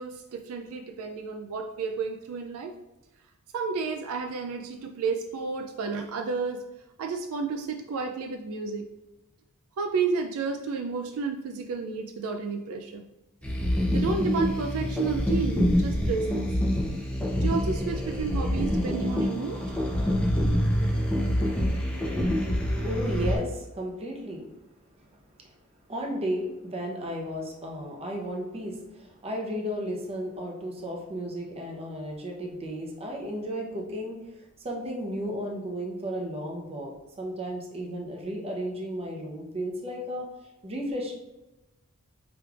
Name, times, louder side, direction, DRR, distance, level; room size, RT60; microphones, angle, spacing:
voice 1, 0.0-2.7 3.5-6.6 7.0-8.9 9.8-13.0 13.9-16.6 17.4-19.6, right 5 dB, 70° right, 5 dB, 0.3 m, -31 dB
sound 1, 13.4-23.4, equal, 5° left, 0.7 m, -26 dB
voice 2, 22.3-24.5 25.0-25.1 25.4-25.5 25.9-34.2 34.6-40.3 40.6-41.1, equal, 25° right, -1 dB, 0.7 m, -34 dB
4.9 x 3.2 x 2.4 m, 1.0 s
head